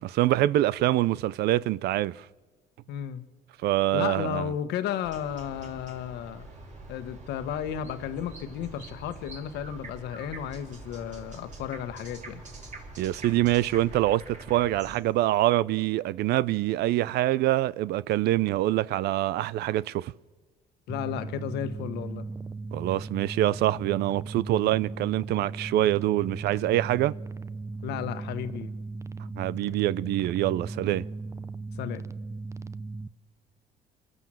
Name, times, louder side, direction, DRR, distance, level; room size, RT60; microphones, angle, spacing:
voice 1, 0.0-2.2 3.6-4.5 13.0-20.1 22.7-27.1 29.4-31.1, right 15 dB, 75° right, 0.5 m, -25 dB
voice 2, 2.9-3.3 3.9-6.5 6.9-12.4 20.9-22.3 27.8-28.7 31.8-32.0, left 9 dB, 80° left, 1.3 m, -33 dB
sound 1, 5.0-15.0, right 2 dB, 45° right, 4.8 m, -45 dB
sound 2, 20.9-33.1, right 3 dB, 15° right, 0.6 m, -37 dB
28.5 x 12.5 x 7.6 m
cardioid pair, 110°, 17 cm